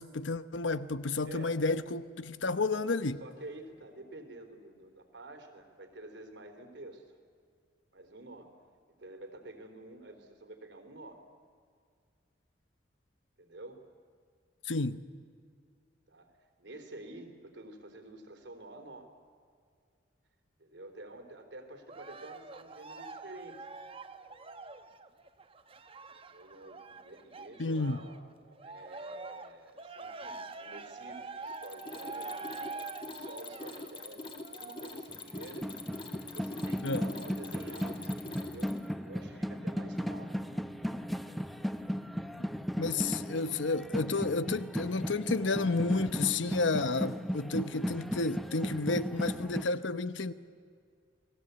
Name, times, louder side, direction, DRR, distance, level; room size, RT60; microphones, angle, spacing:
voice 1, 0.0-3.2 14.6-15.0 27.6-28.0 36.8-37.1 42.8-50.3, left 3 dB, 90° left, 1.0 m, -31 dB
voice 2, 1.2-1.6 3.2-7.0 7.9-8.6 9.0-11.3 13.4-13.8 16.1-16.3 16.6-19.1 20.6-23.7 26.2-32.5 33.1-38.1 38.4-40.7 43.0-43.1, right 2 dB, 75° right, 3.5 m, -49 dB
Cheering, 21.9-28.2 28.6-35.2 35.8-35.9, right 3 dB, 30° right, 1.1 m, -45 dB
Mechanisms, 31.5-38.9, left 2 dB, 25° left, 2.3 m, -44 dB
sound 1, 35.1-49.6, equal, ahead, 0.8 m, -36 dB
30.0 x 20.0 x 8.1 m
head